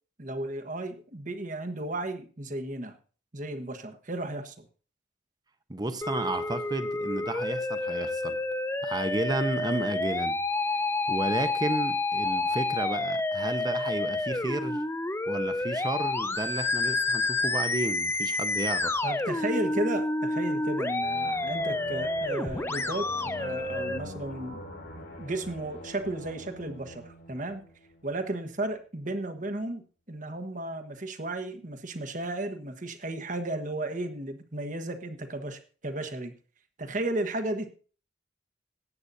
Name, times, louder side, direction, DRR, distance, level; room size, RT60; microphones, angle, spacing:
voice 1, 0.2-2.9 3.3-4.6 19.0-24.6 25.0-27.6 28.0-36.3 36.8-37.7, right 2 dB, 45° right, 1.3 m, -34 dB
voice 2, 5.7-8.4 8.8-10.4 10.7-10.8 11.1-14.8 15.3-19.0, right 2 dB, 20° right, 0.9 m, -32 dB
Musical instrument, 6.0-24.0, left 2 dB, 15° left, 0.6 m, -29 dB
sound 1, 21.0-28.4, left 1 dB, 65° left, 2.9 m, -44 dB
18.0 x 8.8 x 2.7 m
head